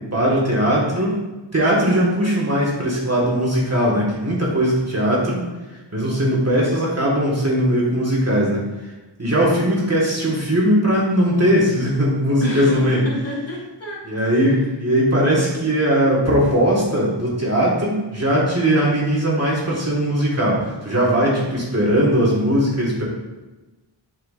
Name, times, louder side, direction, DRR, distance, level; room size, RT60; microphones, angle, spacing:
voice 1, 0.1-1.2 1.5-5.4 5.9-8.7 9.2-13.0 14.1-23.0, equal, 35° right, -5 dB, 1.7 m, -19 dB
voice 2, 12.4-14.6 21.4-21.6, right 1 dB, 35° left, -5 dB, 2.0 m, -30 dB
8.3 x 4.8 x 2.5 m, 1.1 s
wide cardioid pair, 85°, 44 cm